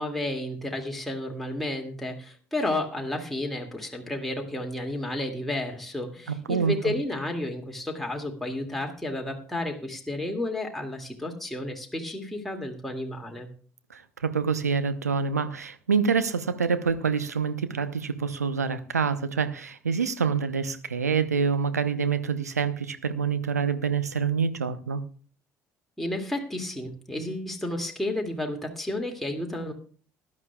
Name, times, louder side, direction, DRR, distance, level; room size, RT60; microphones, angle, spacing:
voice 1, 0.0-13.5 26.0-29.7, left 1 dB, ahead, 0 dB, 2.3 m, -32 dB
voice 2, 6.5-6.9 13.9-25.0, right 6 dB, 90° right, 11 dB, 0.8 m, -26 dB
19.5 x 11.0 x 2.4 m, 0.43 s
figure-of-eight pair, 55°, 8 cm